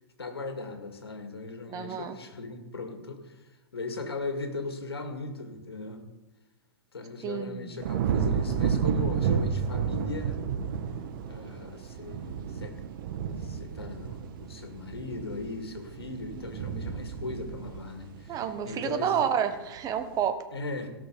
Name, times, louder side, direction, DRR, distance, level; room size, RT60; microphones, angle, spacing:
voice 1, 0.2-6.0 6.9-10.4 11.3-12.8 13.2-19.3 20.5-20.9, left 3 dB, 90° left, 6 dB, 2.1 m, -38 dB
voice 2, 1.7-2.1 7.2-7.7 18.3-20.5, right 8 dB, 30° right, 8 dB, 1.4 m, -29 dB
sound 1, 7.8-19.1 19.5-20.0, right 7 dB, 60° right, 1.5 m, -31 dB
17.5 x 6.0 x 5.6 m, 1.1 s
hypercardioid pair, 115°, 13 cm